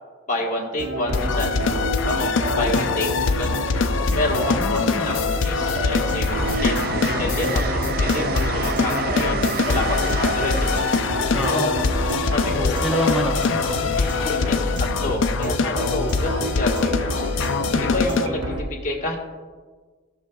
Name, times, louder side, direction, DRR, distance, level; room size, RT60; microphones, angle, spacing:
voice 1, 0.3-1.6 2.0-3.7 4.1-6.8 7.2-11.9 12.3-12.8 13.9-19.2, left 2 dB, 35° left, -1 dB, 1.4 m, -29 dB
sound 1, 0.8-18.6, equal, 65° right, 1.0 m, -28 dB
sound 2, 1.1-18.3, left 4 dB, 75° left, 0.5 m, -24 dB
voice 2, 4.5-5.2 11.3-12.0 12.8-14.8, equal, ahead, -2 dB, 0.6 m, -28 dB
Train, 4.9-13.3 14.9-15.1, right 4 dB, 45° right, 0.4 m, -32 dB
14.5 x 6.6 x 2.3 m, 1.4 s
head